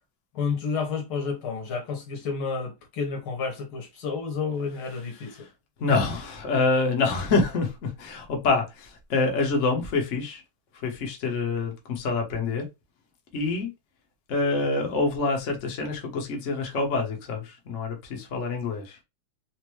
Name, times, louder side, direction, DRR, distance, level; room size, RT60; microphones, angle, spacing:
voice 1, 0.3-5.5, left 5 dB, 80° left, 1.9 m, -30 dB
voice 2, 5.2-5.5 5.8-10.4 10.7-12.6 13.3-13.7 14.3-19.0, left 3 dB, 50° left, 1.0 m, -26 dB
4.5 x 2.1 x 3.0 m
omnidirectional pair, 2.3 m